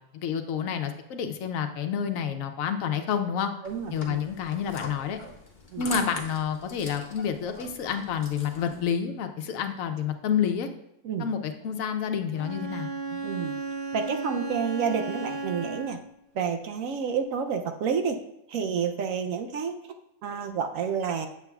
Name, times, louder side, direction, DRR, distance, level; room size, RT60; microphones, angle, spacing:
voice 1, 0.1-3.5 3.9-5.2 5.8-10.7 11.2-12.9, left 7 dB, 80° left, 7 dB, 1.1 m, -29 dB
sound 1, 3.6-8.8, left 2 dB, 40° left, 0.9 m, -41 dB
voice 2, 3.6-4.2 5.7-5.9 11.0-11.3 13.1-13.5 13.9-16.0 16.3-18.2 18.5-19.8 20.2-21.3, right 6 dB, 75° right, 6 dB, 1.0 m, -29 dB
Bowed string instrument, 12.3-16.2, right 3 dB, 45° right, 1.7 m, -34 dB
7.4 x 7.1 x 2.3 m, 0.85 s
omnidirectional pair, 1.4 m